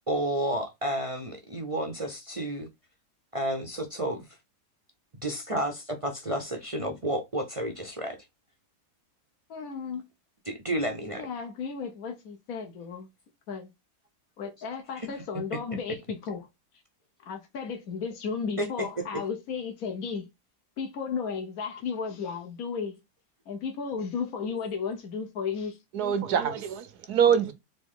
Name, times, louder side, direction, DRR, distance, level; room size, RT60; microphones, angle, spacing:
voice 1, 0.1-2.7 3.3-4.2 5.2-8.2 10.5-11.3 15.0-15.1 18.6-18.9, right 1 dB, 35° right, 0.6 m, -31 dB
voice 2, 9.5-10.1 11.1-13.1 13.5-13.7 14.4-16.5 17.2-20.3 20.8-23.0 23.5-25.8, left 5 dB, 65° left, 1.3 m, -34 dB
voice 3, 25.9-27.5, right 8 dB, 75° right, 1.3 m, -24 dB
4.0 x 3.6 x 3.6 m
omnidirectional pair, 1.7 m